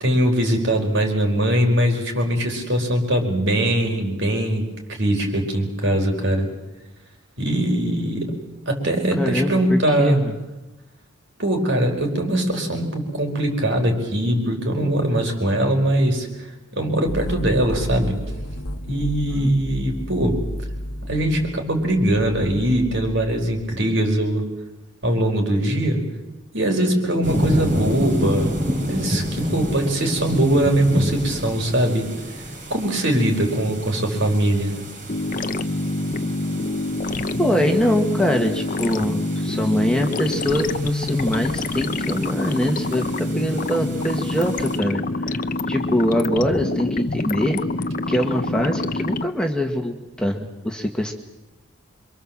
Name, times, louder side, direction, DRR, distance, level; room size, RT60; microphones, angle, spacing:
voice 1, 0.0-6.5 7.4-8.3 8.6-10.2 11.4-16.3 16.7-18.2 18.9-20.4 21.0-24.4 25.0-26.0 26.5-28.6 28.9-32.1 32.4-32.5 32.7-34.8, right 1 dB, 60° right, 2 dB, 4.9 m, -21 dB
voice 2, 9.2-10.3 19.3-19.5 37.4-51.1, equal, 5° left, 2 dB, 1.7 m, -23 dB
sound 1, 17.1-23.8, equal, 90° left, 1.5 m, -32 dB
sound 2, 27.2-44.8, equal, 40° right, 3.8 m, -29 dB
sound 3, 35.1-49.3, left 2 dB, 40° left, 0.8 m, -26 dB
27.0 x 24.0 x 7.5 m, 1.1 s
head